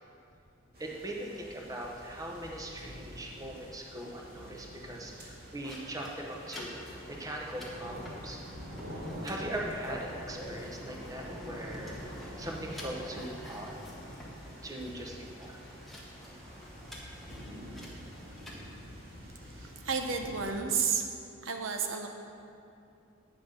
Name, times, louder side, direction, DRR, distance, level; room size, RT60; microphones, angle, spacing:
sound 1, 0.7-20.5, equal, 50° right, 2.2 m, -47 dB
voice 1, 0.8-6.8 7.1-8.4 9.2-12.0 12.4-13.8 14.6-15.6 16.2-16.4 16.7-16.8, right 1 dB, 15° right, 0 dB, 0.9 m, -40 dB
sound 2, 5.6-18.6, equal, ahead, 1.2 m, -48 dB
voice 2, 19.6-21.0 21.4-22.1, right 5 dB, 75° right, 4 dB, 0.8 m, -31 dB
9.0 x 5.9 x 6.6 m, 2.6 s
head